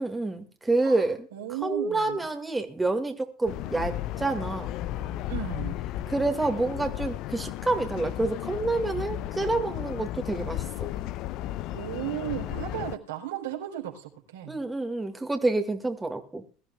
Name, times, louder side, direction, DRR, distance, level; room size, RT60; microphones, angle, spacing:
voice 1, 0.0-1.3 1.6-4.7 6.1-10.6 14.5-16.4, right 2 dB, 10° right, 5 dB, 2.1 m, -28 dB
voice 2, 0.8-2.3 5.3-5.8 11.7-14.6, right 11 dB, 80° right, 1 dB, 4.1 m, -35 dB
sound 1, 3.5-13.0, left 13 dB, 55° left, 0.6 m, -34 dB
21.5 x 13.5 x 2.4 m, 0.39 s
hypercardioid pair, 80°, 0 cm